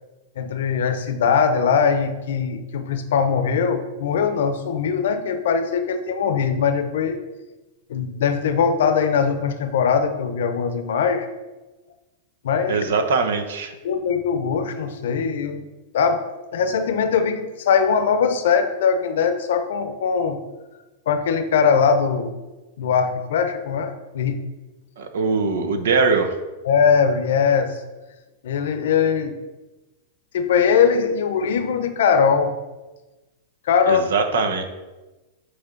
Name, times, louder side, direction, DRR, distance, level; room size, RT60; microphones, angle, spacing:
voice 1, 0.4-7.2 7.9-11.3 12.4-12.8 13.8-15.7 15.9-16.2 16.5-20.4 21.1-22.4 22.8-24.4 26.6-27.8 28.4-29.4 30.3-32.6 33.6-34.0, left 6 dB, 75° left, 8 dB, 0.7 m, -21 dB
voice 2, 12.7-13.7 25.0-26.3 33.9-34.6, right 4 dB, 75° right, 7 dB, 0.8 m, -21 dB
8.0 x 3.3 x 3.9 m, 1.1 s
hypercardioid pair, 130°, 0 cm